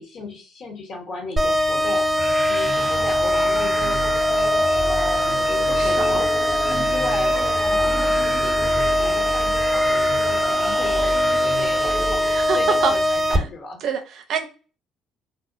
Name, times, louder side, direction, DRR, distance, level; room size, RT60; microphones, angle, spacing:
voice 1, 0.0-2.2 2.5-6.3 6.7-13.8, left 2 dB, 55° left, 0.9 m, -35 dB
sound 1, 1.4-13.4, left 1 dB, 25° right, 0.8 m, -21 dB
sound 2, 1.8-12.4, left 3 dB, 75° left, 1.4 m, -43 dB
sound 3, 2.2-12.7, equal, 15° left, 0.6 m, -31 dB
voice 2, 5.6-6.3 12.3-12.6 12.8-12.9 13.3-13.5 13.8-14.5, right 6 dB, 65° right, 0.5 m, -27 dB
2.6 x 2.0 x 2.5 m
hypercardioid pair, 55°, 0 cm